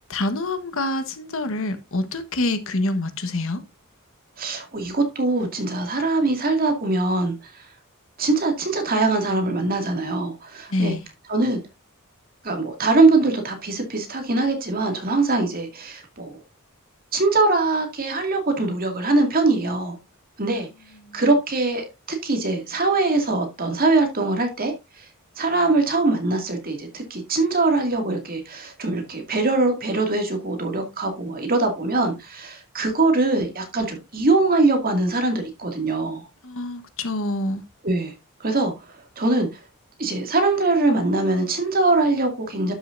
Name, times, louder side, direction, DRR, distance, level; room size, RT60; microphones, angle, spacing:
voice 1, 0.0-3.6 10.7-11.0 21.0-21.2 36.4-37.6, left 2 dB, 65° left, 1.2 m, -26 dB
voice 2, 4.4-7.5 8.2-10.9 11.3-11.6 12.4-16.4 17.1-20.0 20.4-20.7 21.1-24.7 25.4-36.2 37.8-38.1 38.4-38.7 39.2-39.5 40.0-42.7, right 3 dB, 40° right, 2.3 m, -22 dB
12.0 x 6.4 x 2.6 m
head